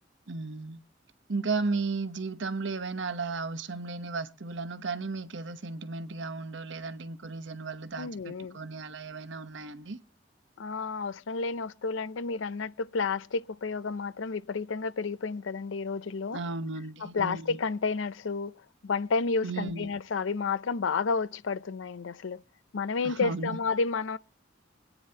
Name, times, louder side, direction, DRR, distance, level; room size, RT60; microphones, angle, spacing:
voice 1, 0.3-0.8 1.3-10.0 16.3-17.6 19.4-19.9 23.0-23.6, right 3 dB, 75° right, 0.9 m, -34 dB
voice 2, 8.0-8.6 10.6-16.4 17.0-18.5 18.8-22.4 22.7-24.2, left 4 dB, 85° left, 0.5 m, -31 dB
24.5 x 9.2 x 2.8 m
head